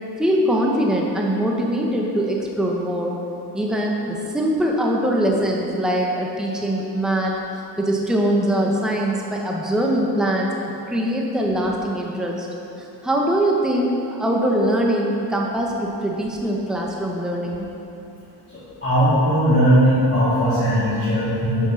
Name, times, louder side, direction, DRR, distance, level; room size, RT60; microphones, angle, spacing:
voice 1, 0.2-3.2 3.5-7.3 7.8-10.5 10.9-12.5 12.8-17.7, right 1 dB, ahead, -1 dB, 0.8 m, -22 dB
voice 2, 18.8-21.7, equal, 25° left, -14 dB, 2.6 m, -18 dB
9.7 x 6.4 x 6.4 m, 2.9 s
wide cardioid pair, 175°, 40 cm